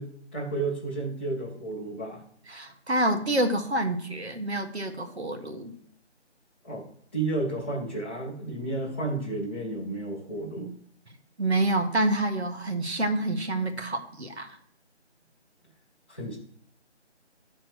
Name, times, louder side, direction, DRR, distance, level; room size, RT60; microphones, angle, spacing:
voice 1, 0.0-2.2 6.6-6.9 7.1-10.7 16.1-16.4, right 2 dB, 10° left, -7 dB, 1.1 m, -32 dB
voice 2, 2.5-5.7 11.4-14.6, right 1 dB, 65° right, 6 dB, 1.7 m, -27 dB
12.0 x 4.4 x 6.5 m, 0.64 s
figure-of-eight pair, 165°, 35 cm